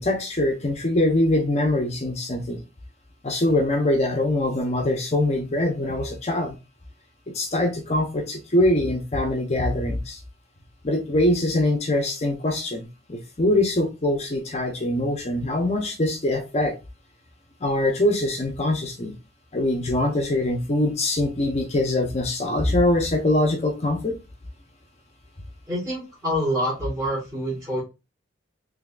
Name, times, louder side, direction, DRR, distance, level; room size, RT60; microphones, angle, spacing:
voice 1, 0.0-2.6 3.2-6.6 7.3-10.2 10.8-16.7 17.6-19.1 19.5-24.2, left 1 dB, 35° left, 3 dB, 0.7 m, -23 dB
voice 2, 25.7-27.8, equal, 15° right, -7 dB, 1.5 m, -26 dB
3.7 x 3.3 x 2.4 m, 0.27 s
head